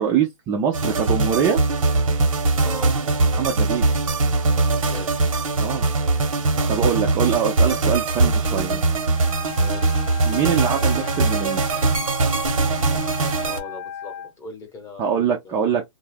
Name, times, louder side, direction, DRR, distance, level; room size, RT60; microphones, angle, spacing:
voice 1, 0.0-1.6 3.3-3.9 5.6-5.9 6.5-8.8 10.3-11.6 15.0-15.8, right 8 dB, 15° right, 0.3 m, -23 dB
sound 1, 0.7-13.6, right 3 dB, 90° right, 0.9 m, -21 dB
voice 2, 2.6-2.9 4.7-5.1 9.5-10.0 13.4-15.7, left 3 dB, 15° left, 0.8 m, -39 dB
Wind instrument woodwind instrument, 9.0-14.3, left 7 dB, 65° left, 0.4 m, -36 dB
2.3 x 2.0 x 3.2 m
hypercardioid pair, 145°, 17 cm